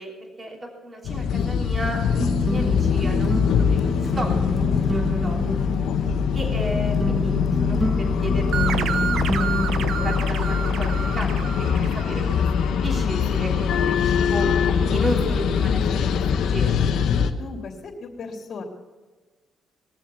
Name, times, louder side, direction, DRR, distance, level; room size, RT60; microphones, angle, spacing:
voice 1, 0.0-5.6 6.3-9.6 10.0-11.3 11.6-12.5 12.8-14.5 14.9-16.1 16.3-16.8, right 1 dB, 25° right, 0 dB, 3.3 m, -34 dB
sound 1, 1.0-17.3, left 7 dB, 80° left, 1.1 m, -23 dB
sound 2, 2.2-11.4, right 1 dB, 5° right, 0.4 m, -29 dB
sound 3, 8.5-12.8, right 8 dB, 75° right, 0.7 m, -30 dB
voice 2, 17.4-18.6, left 4 dB, 55° left, -2 dB, 3.1 m, -36 dB
21.0 x 7.4 x 7.2 m, 1.3 s
cardioid pair, 90°, 0 cm